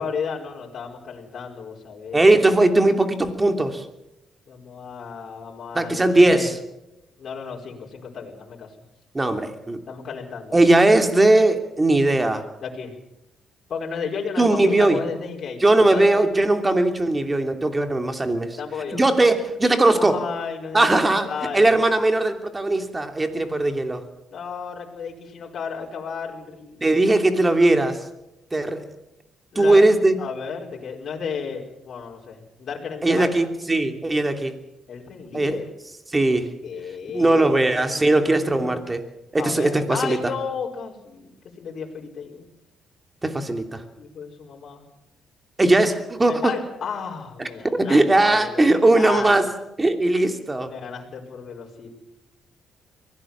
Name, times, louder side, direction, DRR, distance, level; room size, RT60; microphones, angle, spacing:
voice 1, 0.0-2.4 4.5-6.5 7.2-8.7 9.9-10.6 12.6-12.9 13.7-16.2 18.6-19.0 19.9-21.7 24.3-26.8 29.5-29.9 30.2-33.3 34.9-35.6 36.6-38.8 39.4-41.3 41.6-42.5 44.0-44.9 46.3-49.3 50.6-51.9, left 6 dB, 55° left, -1 dB, 5.0 m, -33 dB
voice 2, 2.1-3.8 5.7-6.6 9.1-9.8 10.5-12.4 14.4-15.0 15.6-18.6 18.9-20.2 20.7-24.0 26.8-28.0 28.5-28.8 29.5-30.2 33.0-34.5 35.3-35.6 36.1-36.5 37.1-39.0 39.3-40.3 43.2-43.8 45.6-46.5 47.7-49.5 49.8-50.7, right 2 dB, 20° right, 6 dB, 2.9 m, -19 dB
23.5 x 17.0 x 7.4 m, 0.90 s
cardioid pair, 90°, 0 cm